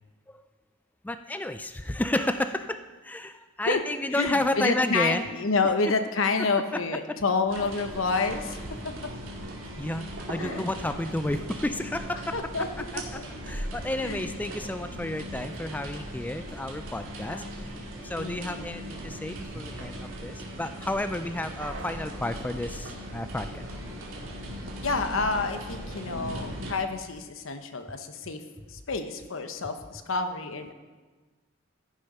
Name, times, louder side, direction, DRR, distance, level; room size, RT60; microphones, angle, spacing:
voice 1, 1.0-5.2 9.8-12.4 13.5-17.4 18.0-23.7, left 1 dB, 10° left, 9 dB, 0.3 m, -31 dB
voice 2, 4.1-8.6 8.8-9.1 10.4-10.7 12.3-12.7 12.9-13.3 14.0-14.3 17.3-17.5 18.2-18.7 24.8-28.4 28.7-30.7, left 4 dB, 80° left, 8 dB, 0.9 m, -29 dB
sound 1, 7.5-26.8, equal, 90° right, 2.2 m, -38 dB
15.0 x 6.6 x 5.4 m, 1.3 s
head